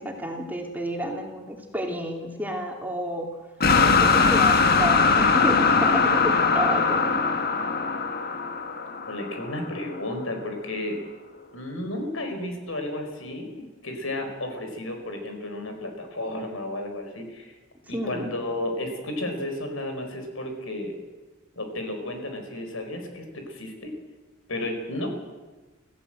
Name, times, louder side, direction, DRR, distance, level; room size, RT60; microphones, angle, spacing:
voice 1, 0.0-3.3 3.8-7.2 17.9-18.3, equal, 10° right, 1 dB, 2.8 m, -30 dB
sound 1, 3.6-9.7, left 4 dB, 50° left, 1.6 m, -21 dB
voice 2, 9.1-11.0 11.5-17.5 17.9-20.9 21.6-23.9 24.5-25.1, left 1 dB, 85° left, 5 dB, 4.7 m, -33 dB
25.5 x 15.5 x 7.8 m, 1.2 s
head